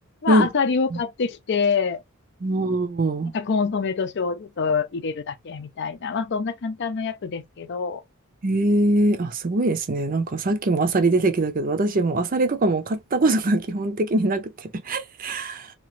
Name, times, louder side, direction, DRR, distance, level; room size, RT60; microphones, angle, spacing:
voice 1, 0.2-2.0 3.3-8.0, left 5 dB, 50° left, 0.4 m, -25 dB
voice 2, 2.4-3.3 8.4-15.7, right 2 dB, 40° right, 0.5 m, -22 dB
2.9 x 2.4 x 3.0 m
head